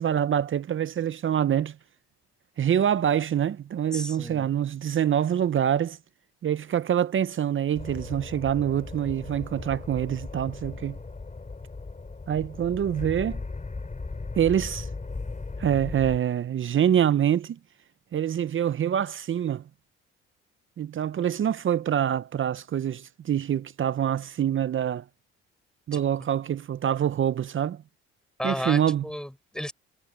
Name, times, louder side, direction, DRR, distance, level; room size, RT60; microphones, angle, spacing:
voice 1, 0.0-1.8 2.6-6.0 6.4-11.0 12.3-13.4 14.4-14.9 15.6-17.6 18.1-19.6 20.8-25.0 25.9-27.8 28.4-29.1, right 9 dB, 45° right, 0.7 m, -25 dB
voice 2, 3.9-4.5 25.9-26.0 28.4-29.7, equal, ahead, 6.9 m, -33 dB
sound 1, 7.7-16.2, left 3 dB, 25° left, 6.3 m, -37 dB
supercardioid pair, 75°, 29 cm